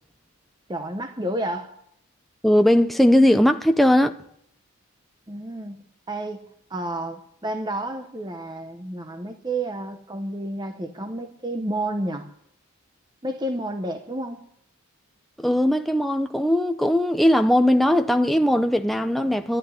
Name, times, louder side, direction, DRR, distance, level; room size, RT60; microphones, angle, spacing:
voice 1, 0.7-1.7 5.3-12.3 13.2-14.5, right 1 dB, 20° right, 0.9 m, -31 dB
voice 2, 2.4-4.1 15.4-19.6, left 1 dB, ahead, 0.5 m, -19 dB
12.0 x 10.5 x 9.8 m
head